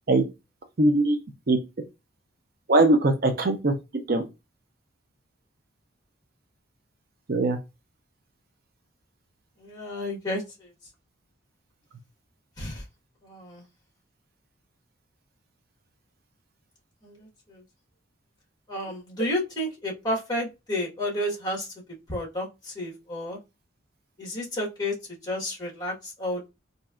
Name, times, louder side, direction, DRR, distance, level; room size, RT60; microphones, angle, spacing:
voice 1, 0.8-1.2 1.5-1.6 2.7-3.7 4.1-4.2 7.3-7.6, right 2 dB, 50° right, 6 dB, 0.5 m, -20 dB
voice 2, 9.6-10.7 12.6-12.8 13.2-13.6 17.0-17.6 18.7-21.7 22.1-23.4 24.2-24.9 25.2-26.5, left 1 dB, 20° left, -2 dB, 1.3 m, -31 dB
4.0 x 2.7 x 2.4 m, 0.24 s
head